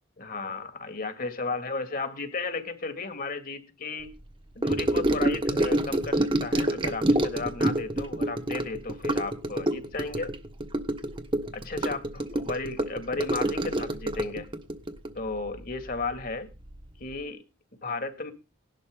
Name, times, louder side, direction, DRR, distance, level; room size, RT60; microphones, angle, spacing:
voice 1, 0.2-4.2 4.5-10.3 11.5-14.5 15.1-16.5 17.0-17.4 17.8-18.3, left 3 dB, 45° left, 2.3 m, -34 dB
Gurgling / Sink (filling or washing) / Trickle dribble, 4.6-16.3 16.5-16.9 17.1-17.2, right 1 dB, 25° right, 1.3 m, -27 dB
18.5 x 11.5 x 3.9 m
head